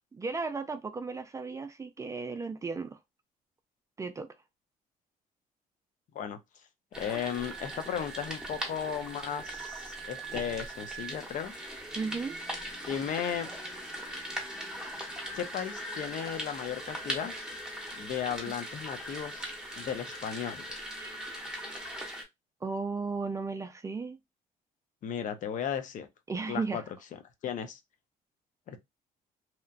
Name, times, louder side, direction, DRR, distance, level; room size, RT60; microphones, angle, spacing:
voice 1, 0.1-3.0 4.0-4.3 12.0-12.4 18.5-18.6 21.0-21.2 22.6-24.2 26.3-26.8, right 4 dB, 20° right, 0.4 m, -35 dB
sound 1, 6.9-22.2, right 1 dB, 5° right, 1.0 m, -40 dB
voice 2, 7.0-11.5 12.9-13.5 15.3-17.3 17.9-20.6 25.0-26.1 26.5-26.8 27.4-27.8 28.7-28.8, left 8 dB, 55° left, 0.6 m, -35 dB
2.8 x 2.1 x 2.4 m
cardioid pair, 110°, 15 cm